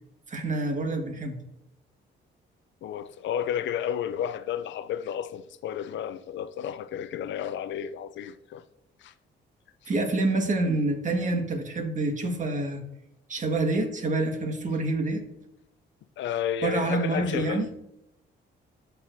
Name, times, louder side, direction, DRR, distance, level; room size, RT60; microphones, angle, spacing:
voice 1, 0.3-1.4 9.9-12.8 13.3-15.2 16.6-17.7, right 2 dB, 40° right, 1.7 m, -27 dB
voice 2, 2.8-8.6 9.0-9.1 16.2-17.6, left 9 dB, 70° left, 0.5 m, -32 dB
12.5 x 4.7 x 2.7 m
cardioid pair, 90°, 20 cm